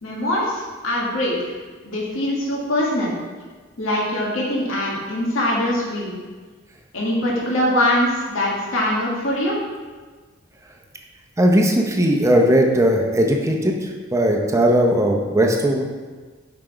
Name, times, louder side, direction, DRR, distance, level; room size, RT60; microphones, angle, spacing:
voice 1, 0.0-1.5 1.8-3.1 3.8-6.1 6.9-9.5, left 1 dB, 80° left, -4 dB, 1.6 m, -22 dB
voice 2, 11.4-15.8, equal, 15° right, 1 dB, 0.7 m, -18 dB
5.8 x 4.9 x 4.5 m, 1.4 s
head